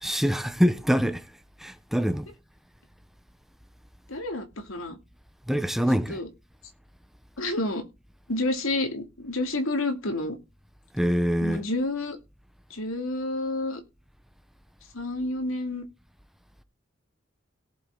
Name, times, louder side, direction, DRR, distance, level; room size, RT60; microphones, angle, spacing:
voice 1, 0.0-1.2 1.6-2.3 5.5-6.2 10.9-11.6, equal, ahead, 0.8 m, -24 dB
voice 2, 4.1-5.0 5.9-6.3 7.4-7.9 8.3-10.4 11.4-12.2 12.7-13.8 14.9-15.8, left 2 dB, 85° left, 2.7 m, -29 dB
17.5 x 7.7 x 3.9 m
head